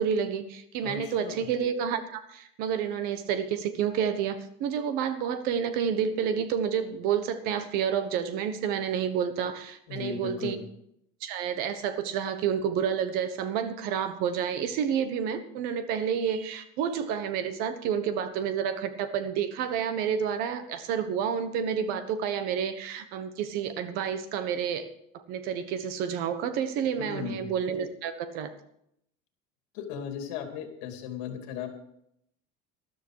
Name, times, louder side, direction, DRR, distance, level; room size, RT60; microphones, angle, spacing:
voice 1, 0.0-10.6 11.2-24.9 25.1-28.5, right 8 dB, 55° right, 11 dB, 1.3 m, -29 dB
voice 2, 0.8-1.4 9.9-10.6 27.0-27.4 29.7-31.7, left 7 dB, 70° left, 5 dB, 2.6 m, -36 dB
13.5 x 12.5 x 4.8 m, 0.75 s
cardioid pair, 170°, 19 cm